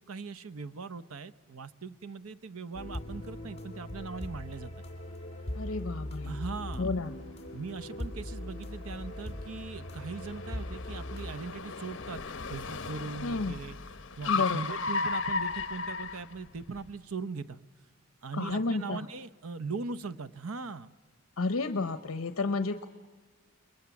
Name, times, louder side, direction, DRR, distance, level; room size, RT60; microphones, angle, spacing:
voice 1, 0.0-4.7 6.2-6.9 7.5-13.8 14.2-17.6 18.2-20.9, right 4 dB, 85° right, 14 dB, 0.8 m, -40 dB
sound 1, 2.7-11.3, left 1 dB, 30° left, 2.3 m, -40 dB
voice 2, 5.5-6.3 6.8-7.2 13.2-13.6 14.3-14.6 18.3-19.1 21.4-22.9, left 3 dB, 80° left, 10 dB, 0.8 m, -31 dB
Car, 7.0-16.9, left 4 dB, 60° left, 1.1 m, -36 dB
30.0 x 21.5 x 7.2 m, 1.4 s
head